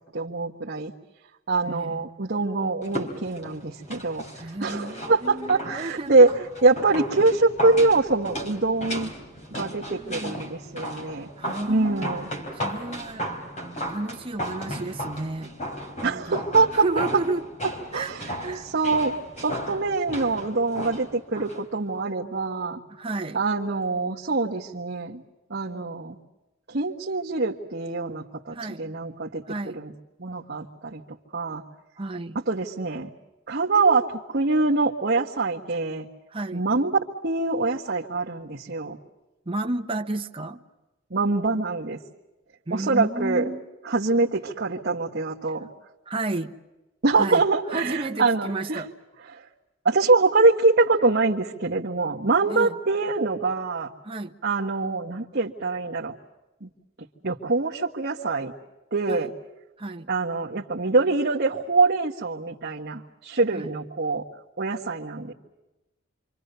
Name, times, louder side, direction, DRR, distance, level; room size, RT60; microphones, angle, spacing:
voice 1, 0.1-0.9 1.5-6.3 6.6-9.1 9.5-11.3 11.7-12.3 16.0-16.8 17.9-18.2 18.6-22.8 23.3-25.2 25.5-26.2 26.7-29.4 29.7-29.9 30.2-31.0 31.3-31.6 32.5-33.1 33.5-36.1 36.5-39.0 41.1-42.0 42.7-43.5 43.8-45.7 47.0-48.8 49.3-49.4 49.8-53.9 54.4-56.1 56.6-56.7 57.2-58.5 58.9-59.3 60.1-64.2 64.6-65.3, right 3 dB, 55° right, -3 dB, 1.5 m, -24 dB
voice 2, 1.6-2.0 4.4-6.3 9.9-10.4 11.4-12.2 12.5-13.4 13.9-15.5 16.0-16.4 16.7-17.4 17.9-18.7 22.9-23.4 28.5-28.9 29.5-29.8 32.0-32.4 36.3-36.6 39.5-40.6 42.7-43.6 46.1-46.6 47.2-48.9 52.5-52.8 54.0-54.4 59.1-59.3 59.8-60.1 63.5-63.7, right 2 dB, 25° right, 5 dB, 1.1 m, -32 dB
sound 1, 2.8-21.6 21.9-22.0, equal, 35° left, 3.7 m, -35 dB
27.5 x 25.5 x 6.8 m, 1.0 s
head